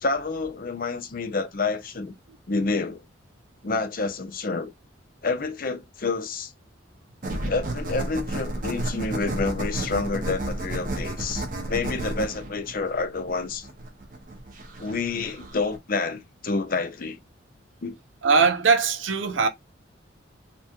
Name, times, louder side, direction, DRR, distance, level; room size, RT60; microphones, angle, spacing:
voice 1, 0.0-2.2 2.5-3.0 3.6-4.7 5.2-6.5 7.5-13.7 14.8-17.2 17.8-18.0, left 3 dB, 45° left, 0.6 m, -28 dB
sound 1, 7.2-15.8, right 1 dB, 45° right, 1.3 m, -32 dB
voice 2, 18.2-19.5, right 5 dB, 85° right, 0.8 m, -20 dB
4.3 x 2.4 x 2.9 m
head